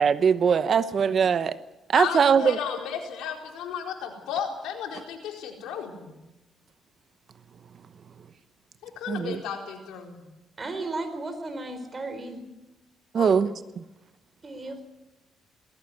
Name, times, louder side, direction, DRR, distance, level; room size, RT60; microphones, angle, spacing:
voice 1, 0.0-1.6 1.9-2.6 9.1-9.4 13.1-13.5, right 6 dB, 50° right, 13 dB, 0.9 m, -21 dB
voice 2, 1.9-6.1 8.8-10.2 13.1-13.4, left 8 dB, 90° left, 2 dB, 4.4 m, -34 dB
voice 3, 10.6-12.4 14.4-14.8, right 2 dB, 30° right, 8 dB, 4.5 m, -34 dB
19.5 x 16.0 x 9.5 m, 1.0 s
cardioid pair, 90°, 0 cm